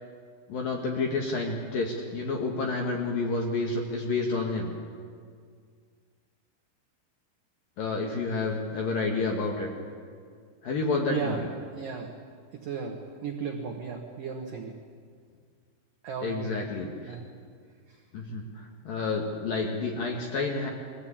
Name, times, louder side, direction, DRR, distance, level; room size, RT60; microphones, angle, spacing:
voice 1, 0.5-4.7 7.8-9.7 10.6-11.5 16.2-17.2 18.1-20.7, left 3 dB, 60° left, 0 dB, 2.6 m, -29 dB
voice 2, 11.1-11.4 11.7-12.1 12.6-14.7 16.0-16.7 17.1-17.3, right 5 dB, 75° right, 2 dB, 2.0 m, -35 dB
22.0 x 15.5 x 8.7 m, 2.1 s
omnidirectional pair, 5.9 m